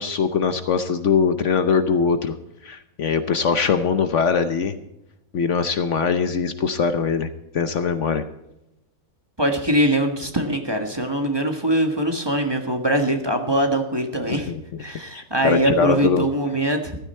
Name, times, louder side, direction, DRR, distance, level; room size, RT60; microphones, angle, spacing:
voice 1, 0.0-2.3 2.6-4.8 5.3-8.2 14.5-14.6 15.1-16.2, left 6 dB, 60° left, 10 dB, 1.1 m, -22 dB
voice 2, 9.4-14.5 14.8-17.0, right 1 dB, 15° right, 4 dB, 1.5 m, -22 dB
15.0 x 12.5 x 4.4 m, 0.88 s
omnidirectional pair, 1.5 m